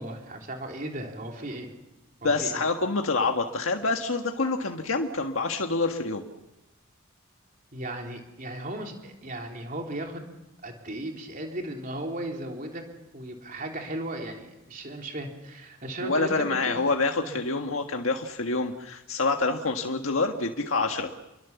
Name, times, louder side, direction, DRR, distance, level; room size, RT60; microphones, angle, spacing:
voice 1, 0.0-1.7 2.2-2.6 7.7-10.3 10.6-12.9 13.1-16.3 16.6-16.8 17.2-17.4, right 1 dB, 40° right, 2 dB, 3.5 m, -36 dB
voice 2, 2.2-6.2 16.0-21.2, left 3 dB, 80° left, 3 dB, 1.7 m, -27 dB
29.5 x 23.0 x 7.2 m, 0.95 s
head